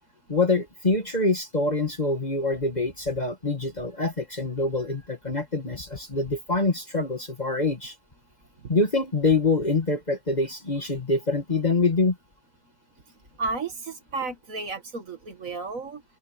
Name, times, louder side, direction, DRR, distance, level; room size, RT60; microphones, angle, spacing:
voice 1, 0.3-7.9 8.7-12.2, left 3 dB, 25° left, 1.7 m, -25 dB
voice 2, 13.1-16.0, right 3 dB, 50° right, 2.3 m, -33 dB
open air
omnidirectional pair, 1.8 m